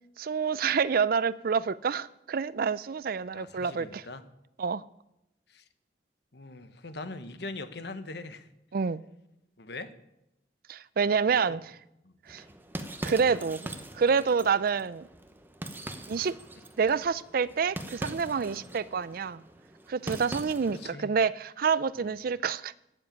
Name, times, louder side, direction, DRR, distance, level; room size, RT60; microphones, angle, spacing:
voice 1, 0.2-4.0 4.6-4.8 8.7-9.0 10.7-11.6 12.3-12.4 13.0-15.1 16.1-16.3 16.8-19.4 19.9-22.7, right 6 dB, 55° right, 0.4 m, -28 dB
voice 2, 3.3-4.2 5.5-5.6 6.3-8.5 9.6-9.9 11.3-11.6 12.0-12.1 18.4-18.6 20.7-21.1 22.0-22.1, left 2 dB, 65° left, 1.1 m, -42 dB
sound 1, 12.3-20.9, right 1 dB, 10° right, 0.9 m, -42 dB
12.0 x 7.6 x 9.4 m
head